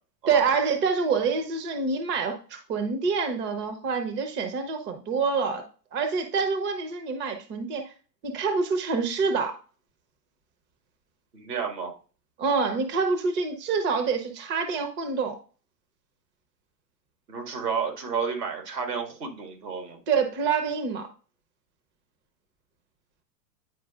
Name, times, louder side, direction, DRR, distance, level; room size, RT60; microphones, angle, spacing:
voice 1, 0.3-7.9 8.2-9.6 12.4-15.4 20.1-21.1, right 5 dB, 25° right, 7 dB, 0.8 m, -26 dB
voice 2, 11.3-11.9 17.3-20.0, right 6 dB, 70° right, 3 dB, 2.1 m, -31 dB
9.4 x 4.7 x 2.4 m, 0.37 s
figure-of-eight pair, 100°, 49 cm